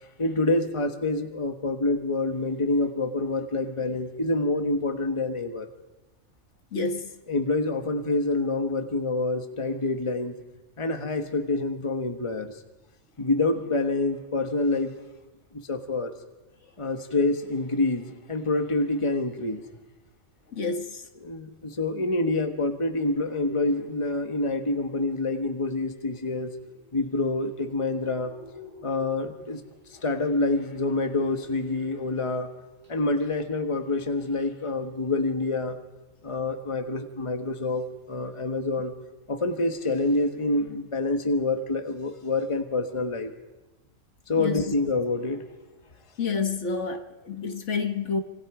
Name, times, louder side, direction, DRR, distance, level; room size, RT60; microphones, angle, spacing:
voice 1, 0.2-5.7 7.3-10.4 10.8-12.5 13.2-14.9 15.7-16.1 16.8-19.6 21.2-26.5 26.9-28.3 28.8-29.6 30.0-32.5 32.9-35.8 36.2-38.9 39.3-43.3 44.3-45.4, left 2 dB, 25° left, 1.4 m, -27 dB
voice 2, 6.7-7.1 20.5-21.0 44.4-44.7 46.2-48.2, left 4 dB, 65° left, 1.7 m, -29 dB
sound 1, 23.1-32.3 32.6-33.0 33.2-33.3, left 2 dB, 80° right, 5.1 m, -49 dB
26.0 x 24.0 x 5.0 m
omnidirectional pair, 1.3 m